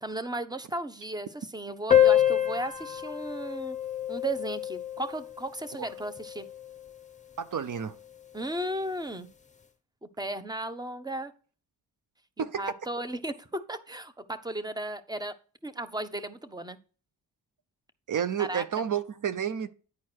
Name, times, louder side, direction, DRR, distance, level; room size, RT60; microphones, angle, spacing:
voice 1, 0.0-3.8 4.1-6.5 8.3-9.3 10.2-11.3 12.4-15.3 15.6-16.8 18.4-18.8, right 1 dB, 10° right, 0.9 m, -35 dB
sound 1, 1.9-6.9, left 11 dB, 20° left, 0.8 m, -27 dB
voice 2, 7.4-8.0 12.4-12.7 18.1-19.7, right 8 dB, 50° right, 0.6 m, -30 dB
9.8 x 4.6 x 4.4 m
cardioid pair, 60°, 41 cm